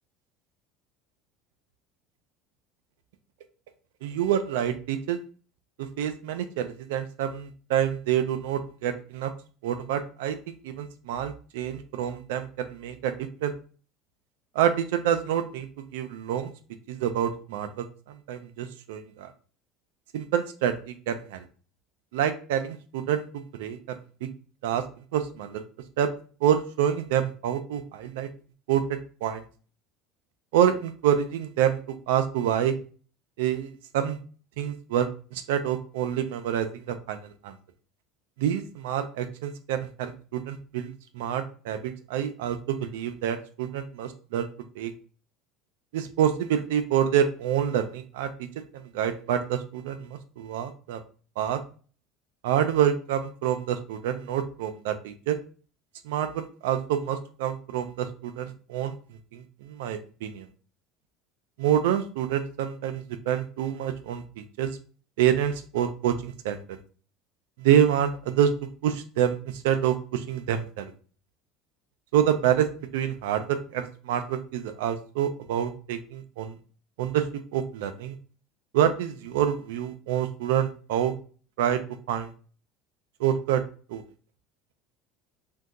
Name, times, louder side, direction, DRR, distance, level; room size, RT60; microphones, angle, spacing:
voice 1, 4.0-5.2 6.0-9.3 9.6-10.4 10.6-13.1 13.4-13.5 14.6-15.7 15.9-16.5 16.9-19.3 20.1-21.4 22.1-24.3 24.6-24.8 25.1-25.6 26.0-26.1 26.4-28.3 28.7-29.4 30.5-31.8 32.1-32.7 33.4-34.2 34.6-37.5 38.4-44.5 44.8-44.9 45.9-48.5 48.7-51.0 51.4-51.6 52.4-55.4 56.0-58.9 59.3-60.5 61.6-64.8 65.2-66.6 67.6-68.5 68.8-70.9 72.1-72.7 72.9-76.5 77.0-77.2 77.5-78.1 78.7-81.1 81.6-81.8 82.1-82.3 83.2-83.6 83.9-84.0, right 9 dB, 85° right, 8 dB, 0.4 m, -27 dB
2.7 x 2.2 x 3.5 m, 0.39 s
supercardioid pair, 110°, 0 cm